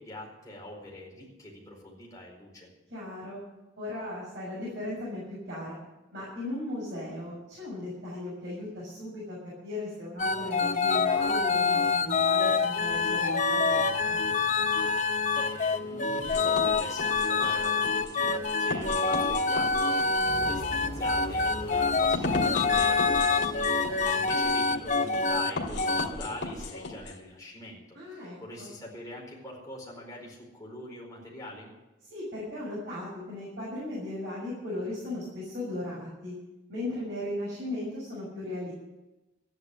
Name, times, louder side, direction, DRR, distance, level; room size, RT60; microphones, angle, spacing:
voice 1, 0.0-2.7 14.9-31.7, left 1 dB, 15° left, -3 dB, 4.5 m, -43 dB
voice 2, 2.9-3.4 3.8-5.7 6.1-9.4 9.6-14.2 27.9-28.7 32.1-36.3 36.7-38.7, left 1 dB, 55° right, -7 dB, 7.0 m, -37 dB
sound 1, 10.2-25.5 25.8-26.1, left 4 dB, 40° left, 0.7 m, -26 dB
sound 2, 16.2-27.2, left 2 dB, 60° left, 2.2 m, -37 dB
sound 3, 20.2-25.0, equal, 20° right, 6.9 m, -43 dB
13.5 x 10.5 x 8.1 m, 1.0 s
head